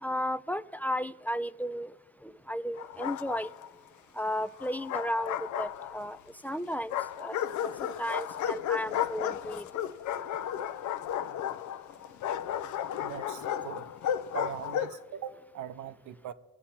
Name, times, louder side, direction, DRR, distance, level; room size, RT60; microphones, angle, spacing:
voice 1, 0.0-1.9 2.2-3.5 4.1-6.2 6.4-6.9 7.2-9.8, equal, 5° left, 0.3 m, -34 dB
Bark, 2.8-3.7 4.6-6.2 6.9-15.0, left 10 dB, 70° left, 0.6 m, -34 dB
voice 2, 13.0-16.3, right 9 dB, 75° right, 0.7 m, -41 dB
22.0 x 7.8 x 4.3 m
cardioid pair, 90°, 30 cm